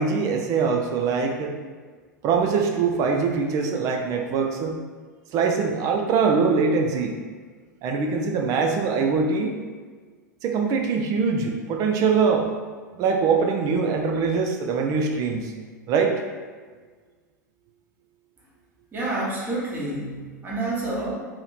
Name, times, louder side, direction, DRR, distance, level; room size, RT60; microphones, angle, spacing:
voice 1, 0.0-1.5 2.2-4.7 5.3-7.2 7.8-9.5 10.4-12.5 13.0-15.5 15.9-16.2, right 5 dB, 35° right, 2 dB, 0.4 m, -23 dB
voice 2, 18.9-21.1, right 2 dB, 20° right, -6 dB, 1.1 m, -28 dB
3.0 x 2.8 x 3.9 m, 1.5 s
figure-of-eight pair, 95°, 10 cm